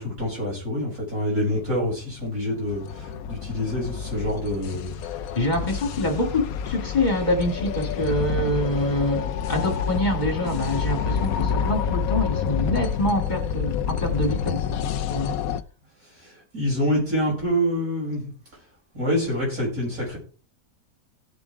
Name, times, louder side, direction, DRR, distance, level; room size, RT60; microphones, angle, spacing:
voice 1, 0.0-4.9 16.2-18.3 18.9-20.2, equal, 85° right, 7.4 m, -26 dB
sound 1, 1.7-15.6, left 7 dB, 80° left, 1.1 m, -28 dB
voice 2, 5.3-15.4, left 1 dB, 30° left, 2.5 m, -26 dB
17.0 x 7.0 x 3.6 m
omnidirectional pair, 1.5 m